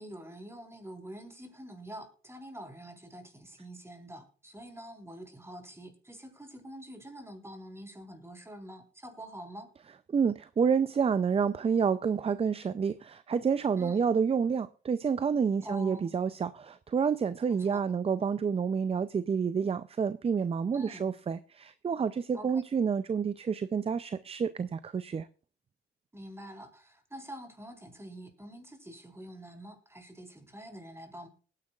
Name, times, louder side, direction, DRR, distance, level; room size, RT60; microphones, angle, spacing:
voice 1, 0.0-9.7 13.8-14.1 15.6-16.1 17.5-17.8 20.7-21.1 22.3-22.6 26.1-31.3, equal, 15° right, 4.1 m, -46 dB
voice 2, 10.1-25.3, right 6 dB, 30° right, 0.5 m, -29 dB
20.0 x 9.8 x 2.4 m
supercardioid pair, 65°, 19 cm